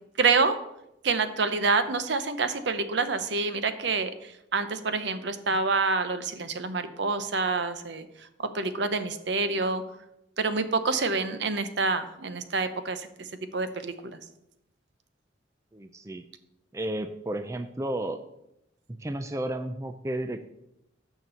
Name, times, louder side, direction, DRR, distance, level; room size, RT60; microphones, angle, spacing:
voice 1, 0.2-0.6 1.0-8.0 8.5-9.8 10.4-13.3 13.5-13.9, right 4 dB, 65° right, 10 dB, 0.7 m, -27 dB
voice 2, 15.7-16.2 16.7-18.2 19.0-20.5, right 1 dB, 15° right, 8 dB, 0.4 m, -32 dB
6.7 x 6.0 x 7.0 m, 0.84 s
head